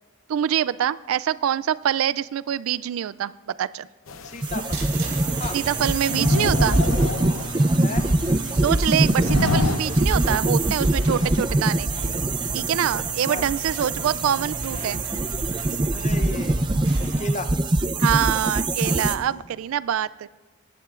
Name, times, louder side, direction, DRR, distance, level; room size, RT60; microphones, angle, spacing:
voice 1, 0.3-3.3 3.6-3.9 5.5-6.8 8.6-11.9 12.5-15.0 18.0-20.3, right 9 dB, 85° right, 19 dB, 0.3 m, -25 dB
sound 1, 4.1-11.3, left 3 dB, 80° left, 0.7 m, -30 dB
voice 2, 4.2-4.8 5.4-5.6 7.8-8.1 13.3-13.5 15.9-16.6 17.0-17.6, left 2 dB, 35° left, 9 dB, 0.7 m, -34 dB
sound 2, 4.4-19.2, right 2 dB, 20° right, 0.5 m, -23 dB
sound 3, 4.7-17.2, right 2 dB, 45° right, 4.1 m, -37 dB
22.0 x 11.0 x 2.5 m, 1.2 s
head